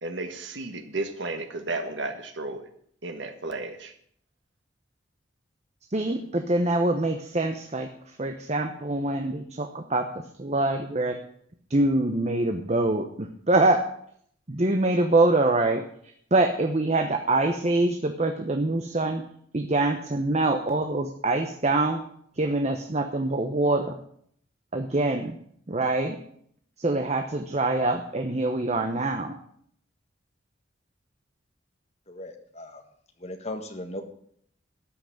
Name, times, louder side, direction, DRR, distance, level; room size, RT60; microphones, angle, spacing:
voice 1, 0.0-2.6 3.0-3.9, right 2 dB, 75° right, 6 dB, 1.6 m, -33 dB
voice 2, 5.9-11.2 11.7-13.8 14.5-15.8 16.3-19.2 19.5-22.0 22.3-24.0 24.7-25.4 25.7-26.2 26.8-29.3, right 2 dB, 35° right, 5 dB, 0.9 m, -25 dB
voice 3, 32.1-32.8 33.2-34.0, left 1 dB, 35° left, 5 dB, 1.6 m, -37 dB
13.0 x 6.0 x 8.8 m, 0.65 s
head